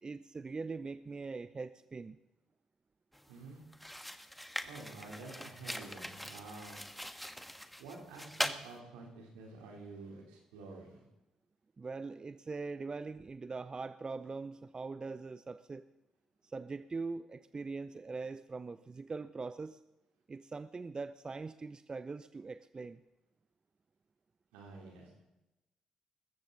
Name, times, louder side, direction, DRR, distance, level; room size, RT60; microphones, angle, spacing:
voice 1, 0.0-2.2 11.8-15.8 16.4-19.8 20.3-23.0, right 4 dB, 35° right, 14 dB, 0.7 m, -42 dB
sound 1, 3.1-3.3 3.7-8.6, equal, 5° left, 1.4 m, -41 dB
voice 2, 3.3-3.6 4.6-6.8 7.8-11.1 24.5-25.3, right 3 dB, 85° right, 0 dB, 3.5 m, -49 dB
21.0 x 14.5 x 4.0 m, 0.97 s
hypercardioid pair, 45°, 2 cm